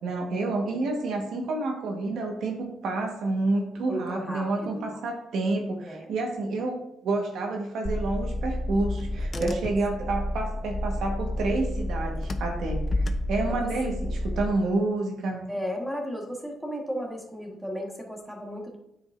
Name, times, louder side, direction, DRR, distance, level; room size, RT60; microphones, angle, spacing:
voice 1, 0.0-15.4, right 2 dB, 75° right, 1 dB, 1.4 m, -29 dB
voice 2, 3.9-4.9 5.8-6.1 9.3-9.6 13.5-13.7 15.5-18.8, equal, ahead, 1 dB, 1.4 m, -34 dB
Car / Engine, 7.8-14.5, left 1 dB, 30° left, 0.6 m, -30 dB
9.1 x 5.0 x 2.6 m, 0.81 s
cardioid pair, 90°, 0 cm